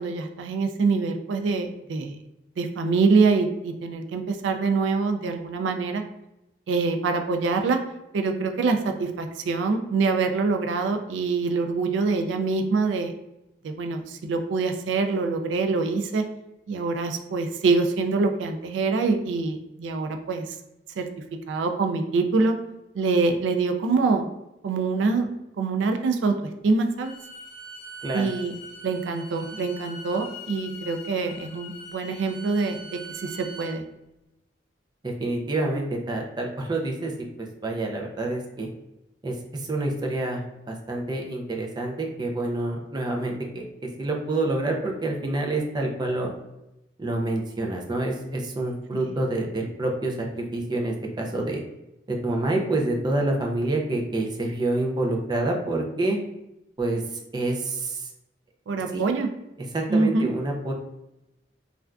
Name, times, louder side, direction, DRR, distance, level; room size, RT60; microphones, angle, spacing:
voice 1, 0.0-2.2 2.6-6.0 6.7-7.8 8.1-13.1 13.6-16.2 16.7-20.4 21.0-21.1 21.5-22.6 22.9-24.3 24.6-25.3 25.6-26.4 26.6-27.1 28.1-28.5 28.8-32.8 33.2-33.8 48.9-49.0 58.7-59.3 59.9-60.3, right 4 dB, 90° right, 5 dB, 0.3 m, -25 dB
Bowed string instrument, 27.0-33.8, equal, 60° left, 0.5 m, -42 dB
voice 2, 35.0-37.1 37.4-38.7 39.2-40.4 40.7-46.3 47.0-51.6 52.1-56.2 56.8-57.0 57.3-58.1 58.9-59.0 59.7-60.7, right 2 dB, 25° right, 1 dB, 0.4 m, -27 dB
3.3 x 2.4 x 2.3 m, 0.90 s
head